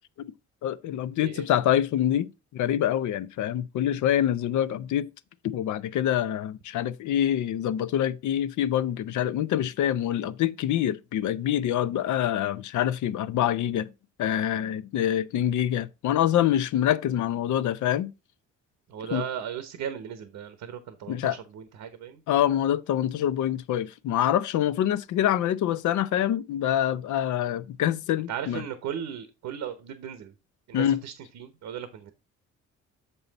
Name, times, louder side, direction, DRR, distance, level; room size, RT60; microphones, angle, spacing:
voice 1, 0.6-5.1 5.4-13.9 14.2-18.1 19.1-19.2 21.1-21.4 22.3-28.6 30.7-31.0, left 11 dB, 75° left, 0.6 m, -25 dB
voice 2, 18.9-22.2 28.3-30.3 30.7-32.1, right 9 dB, 80° right, 1.0 m, -36 dB
6.9 x 5.6 x 4.0 m
cardioid pair, 90°, 30 cm